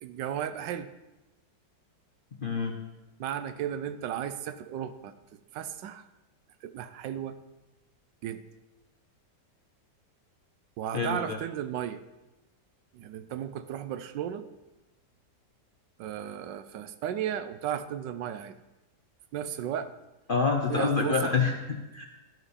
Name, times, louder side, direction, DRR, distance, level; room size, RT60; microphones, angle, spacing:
voice 1, 0.0-0.9 3.2-5.1 5.5-6.1 6.6-7.4 8.2-8.4 10.8-12.0 12.9-14.5 16.0-18.5 19.3-19.9 20.7-21.3, right 9 dB, 85° right, 11 dB, 1.3 m, -34 dB
voice 2, 2.4-2.8 10.9-11.4 20.3-22.1, left 4 dB, 50° left, 2 dB, 0.6 m, -27 dB
12.5 x 8.2 x 4.2 m, 1.0 s
omnidirectional pair, 1.9 m